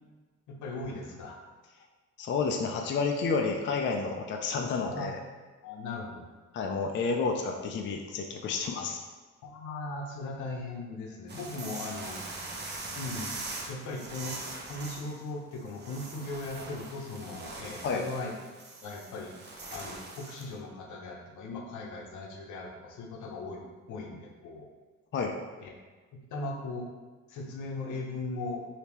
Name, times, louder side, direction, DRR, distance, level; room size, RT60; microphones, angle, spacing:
voice 1, 0.5-1.4 4.8-5.2 5.6-6.2 9.4-12.6 12.9-13.3 13.7-14.4 14.7-18.3 18.8-19.3 19.7-24.7 25.6-25.7 26.1-26.9 27.3-28.6, left 2 dB, 75° left, 1 dB, 0.7 m, -38 dB
voice 2, 2.2-5.2 6.5-9.0 17.8-18.0 25.1-25.3, left 4 dB, 40° left, 2 dB, 0.4 m, -30 dB
sound 1, 11.3-20.5, right 3 dB, 35° right, 0.7 m, -42 dB
3.4 x 2.8 x 3.0 m, 1.3 s
cardioid pair, 90°, 30 cm